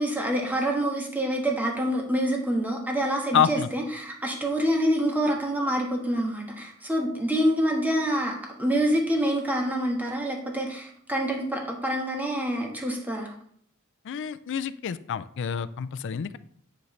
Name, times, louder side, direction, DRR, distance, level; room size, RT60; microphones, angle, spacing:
voice 1, 0.0-13.3, equal, 10° right, -1 dB, 1.3 m, -26 dB
voice 2, 3.3-3.7 14.0-16.4, left 8 dB, 60° left, 13 dB, 0.4 m, -27 dB
9.5 x 5.2 x 3.2 m, 0.63 s
head